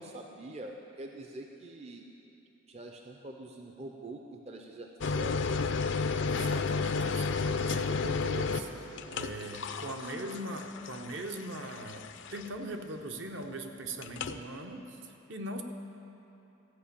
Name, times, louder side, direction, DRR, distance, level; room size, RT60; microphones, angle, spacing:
voice 1, 0.0-2.1 2.7-5.7 10.0-10.4, right 1 dB, 30° right, 3 dB, 0.5 m, -45 dB
sound 1, 5.0-12.7 14.0-14.4, left 4 dB, 65° left, 0.4 m, -32 dB
voice 2, 6.2-8.7 9.1-15.6, right 1 dB, 65° right, 4 dB, 0.8 m, -40 dB
14.5 x 5.1 x 8.5 m, 2.9 s
head